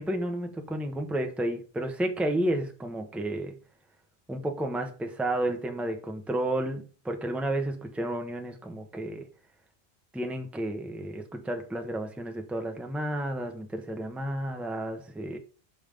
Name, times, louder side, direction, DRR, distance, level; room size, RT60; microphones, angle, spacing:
voice 1, 0.0-3.5 4.3-9.3 10.1-15.4, right 1 dB, ahead, 1.0 m, -31 dB
5.7 x 5.6 x 5.1 m
omnidirectional pair, 1.2 m